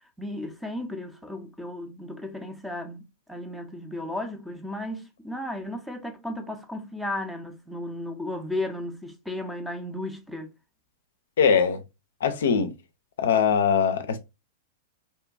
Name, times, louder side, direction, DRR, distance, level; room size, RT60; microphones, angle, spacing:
voice 1, 0.2-3.0 3.3-10.5, left 1 dB, ahead, 0.4 m, -34 dB
voice 2, 11.4-11.8 12.2-12.7 13.2-14.2, left 6 dB, 65° left, 0.4 m, -21 dB
2.7 x 2.2 x 2.3 m
figure-of-eight pair, 100°, 0 cm